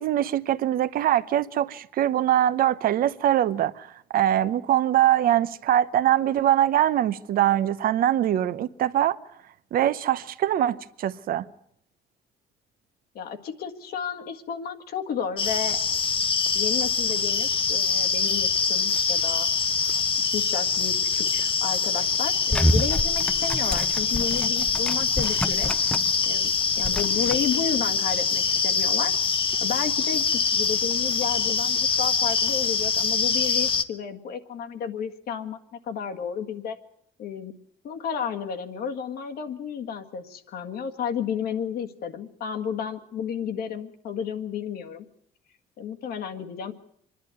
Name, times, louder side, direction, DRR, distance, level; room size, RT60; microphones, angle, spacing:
voice 1, 0.0-3.9 4.1-9.2 9.7-11.5, right 12 dB, 60° right, 0.9 m, -23 dB
voice 2, 13.2-15.8 16.5-19.5 20.3-25.9 26.3-26.5 26.8-29.2 29.6-30.2 30.5-36.8 37.2-37.5 37.8-45.1 45.8-46.7, left 7 dB, 65° left, 1.8 m, -32 dB
sound 1, 15.4-33.8, left 5 dB, 30° left, 1.0 m, -24 dB
sound 2, 22.5-26.2 26.5-27.4, equal, 5° left, 0.7 m, -28 dB
25.0 x 11.0 x 9.6 m
cardioid pair, 110°, 17 cm